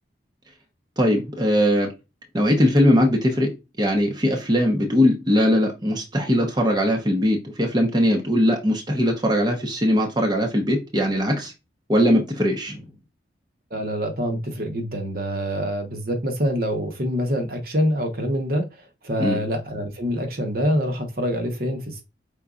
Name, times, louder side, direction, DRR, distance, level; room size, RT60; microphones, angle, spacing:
voice 1, 1.0-1.9 2.3-3.5 3.8-11.5 11.9-12.8 19.2-19.4, equal, 25° right, 0.9 m, -20 dB
voice 2, 13.7-18.6 19.0-22.0, equal, 55° right, 1.1 m, -25 dB
5.4 x 4.0 x 2.4 m
head